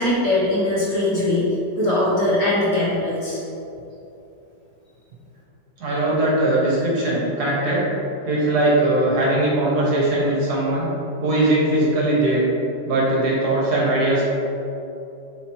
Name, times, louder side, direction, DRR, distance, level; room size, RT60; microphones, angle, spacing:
voice 1, 0.0-1.5 1.8-3.4, left 1 dB, 45° left, -8 dB, 1.9 m, -21 dB
voice 2, 5.8-7.9 8.2-10.9 11.2-12.4 12.8-14.2, right 1 dB, 60° right, -5 dB, 1.7 m, -20 dB
7.8 x 4.2 x 3.1 m, 2.8 s
omnidirectional pair, 2.0 m